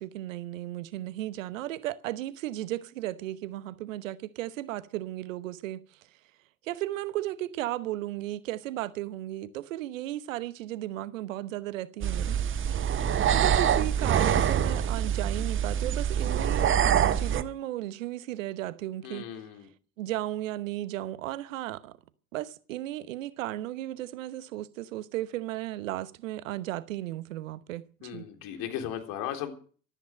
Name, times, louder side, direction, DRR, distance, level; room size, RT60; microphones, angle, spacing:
voice 1, 0.0-5.8 6.6-12.4 13.3-19.3 20.0-22.0 22.3-28.2, right 15 dB, 65° right, 1.0 m, -35 dB
sound 1, 12.0-17.4, right 9 dB, 30° right, 1.2 m, -25 dB
voice 2, 19.0-19.7 28.0-29.5, left 10 dB, 50° left, 3.7 m, -36 dB
14.5 x 13.5 x 6.3 m
figure-of-eight pair, 70°, 42 cm